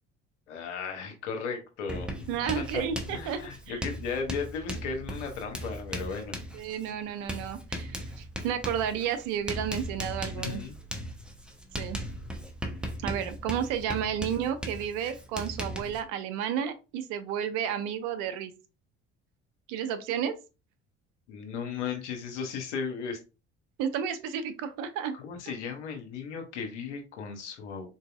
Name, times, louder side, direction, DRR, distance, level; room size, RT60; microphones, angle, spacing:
voice 1, 0.5-2.9 3.1-6.4 10.3-10.8 21.3-23.2 25.1-27.9, left 5 dB, 75° left, 4 dB, 0.9 m, -36 dB
Writing, 1.9-16.0, equal, 5° right, 0.7 m, -38 dB
voice 2, 2.3-3.4 3.7-3.8 6.5-10.6 11.8-12.0 13.0-18.5 19.7-20.3 23.8-25.2, right 8 dB, 60° right, 10 dB, 0.6 m, -32 dB
3.8 x 2.7 x 2.3 m, 0.30 s
figure-of-eight pair, 55°, 35 cm